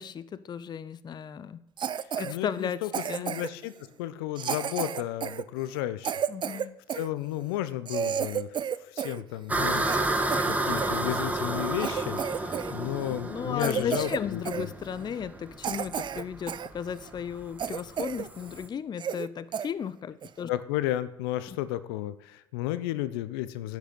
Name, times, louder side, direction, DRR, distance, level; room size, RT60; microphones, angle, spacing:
voice 1, 0.0-1.6 2.2-2.8 3.1-3.4 6.3-6.8 13.3-20.5 21.5-21.6, left 7 dB, 35° left, 16 dB, 0.6 m, -35 dB
Cough, 1.8-2.3 2.9-3.6 4.4-7.1 7.5-7.6 7.8-9.2 9.5-11.0 11.4-11.5 11.8-12.7 13.0-13.2 13.6-14.2 14.4-14.7 15.2-15.3 15.6-16.7 17.1-17.2 17.6-18.3 18.6-18.7 19.0-19.3 19.5-19.7 20.2-20.4, right 8 dB, 40° right, 0.6 m, -32 dB
voice 2, 2.2-2.9 3.2-3.7 4.0-6.1 6.9-8.5 8.9-9.9 10.1-14.7 20.5-23.8, left 14 dB, 75° left, 14 dB, 0.8 m, -33 dB
sound 1, 9.5-18.7, right 2 dB, 10° right, 1.9 m, -31 dB
10.0 x 6.6 x 8.3 m, 0.83 s
hypercardioid pair, 65°, 13 cm